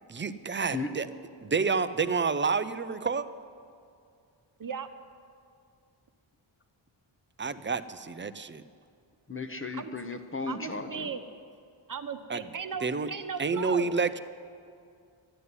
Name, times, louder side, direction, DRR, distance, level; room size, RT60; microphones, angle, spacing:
voice 1, 0.1-1.1 1.4-3.3 7.4-8.6 12.3-12.5 12.8-13.1 13.4-14.2, right 5 dB, 25° right, 12 dB, 0.5 m, -29 dB
voice 2, 9.3-11.1, left 3 dB, 25° left, 7 dB, 0.8 m, -35 dB
voice 3, 10.5-11.2 11.9-13.9, right 6 dB, 40° right, 9 dB, 0.9 m, -37 dB
12.5 x 9.6 x 9.5 m, 2.3 s
wide cardioid pair, 110°, 48 cm